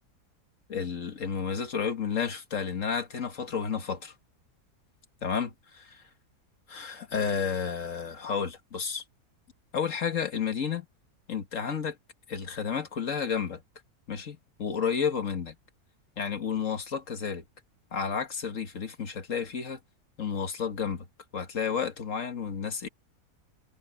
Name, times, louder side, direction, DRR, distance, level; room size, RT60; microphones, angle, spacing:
voice 1, 0.7-4.1 5.2-6.0 6.7-9.0 9.7-10.9 11.3-12.0 12.3-13.6 14.1-15.6 16.2-17.4 17.9-19.8 20.2-21.1 21.3-22.9, left 6 dB, 55° left, 1.9 m, -31 dB
omnidirectional pair, 1.7 m